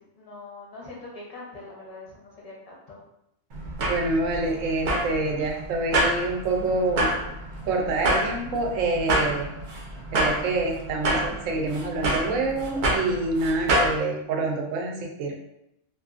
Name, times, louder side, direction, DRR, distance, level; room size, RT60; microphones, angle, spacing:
voice 1, 0.0-3.0, left 2 dB, 40° left, -4 dB, 0.6 m, -43 dB
sound 1, 3.5-14.0, right 1 dB, 65° right, 0.5 m, -27 dB
voice 2, 3.9-7.1 7.7-9.5 10.1-15.3, right 2 dB, 80° right, 1 dB, 0.9 m, -26 dB
2.7 x 2.4 x 2.4 m, 0.82 s
omnidirectional pair, 1.3 m